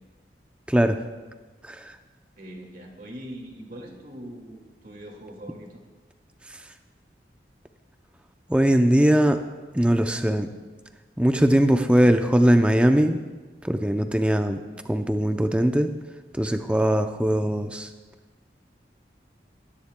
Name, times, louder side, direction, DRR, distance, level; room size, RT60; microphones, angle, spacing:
voice 1, 0.7-1.0 1.6-2.0 6.5-6.6 8.5-9.4 9.7-10.5 11.2-13.2 13.6-14.6 14.8-15.9 16.3-17.9, equal, 5° right, 7 dB, 0.5 m, -20 dB
voice 2, 2.4-5.8, right 1 dB, 50° right, 1 dB, 2.0 m, -41 dB
20.5 x 10.0 x 2.2 m, 1.3 s
head